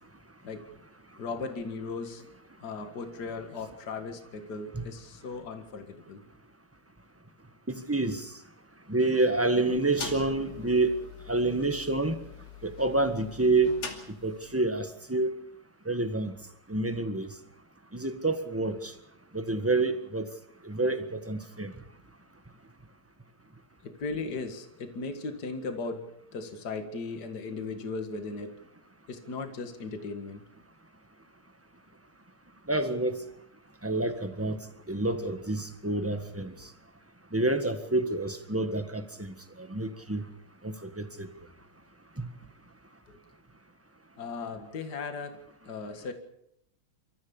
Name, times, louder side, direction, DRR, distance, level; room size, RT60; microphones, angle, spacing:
voice 1, 1.2-2.2 2.6-6.2 23.8-26.1 26.3-28.5 29.1-30.4 43.1-43.2 44.2-45.4 45.7-46.1, left 4 dB, 50° left, 7 dB, 2.4 m, -37 dB
voice 2, 7.7-8.3 8.9-10.9 11.3-12.1 12.6-13.7 14.2-15.3 15.9-16.3 16.7-17.3 17.9-18.9 19.3-20.2 20.6-21.7 32.7-33.2 33.8-34.6 34.9-36.5 37.3-39.0 39.6-40.2 40.6-41.3 42.2-42.3, right 2 dB, 10° right, 9 dB, 1.3 m, -28 dB
sound 1, 9.6-14.7, left 5 dB, 70° left, 3.5 m, -43 dB
29.5 x 14.0 x 7.1 m, 0.76 s
omnidirectional pair, 2.3 m